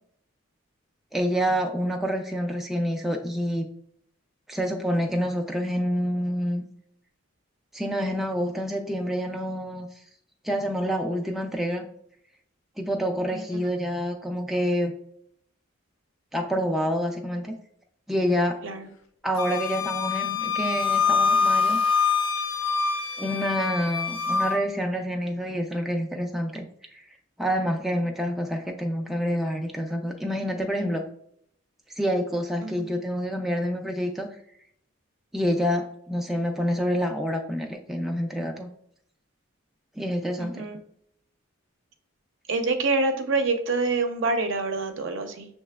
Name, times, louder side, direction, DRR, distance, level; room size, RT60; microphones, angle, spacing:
voice 1, 1.1-3.6 4.5-6.6 7.7-9.9 10.4-11.8 12.8-14.9 16.3-17.6 18.1-18.6 19.2-21.8 23.2-27.1 27.4-31.0 31.9-34.3 35.3-38.7 40.0-40.7, equal, ahead, 2 dB, 0.3 m, -27 dB
Wind instrument woodwind instrument, 19.4-24.6, left 5 dB, 80° left, 0.5 m, -25 dB
voice 2, 40.4-40.8 42.5-45.5, right 3 dB, 70° right, 6 dB, 0.6 m, -26 dB
6.5 x 3.0 x 2.2 m, 0.69 s
head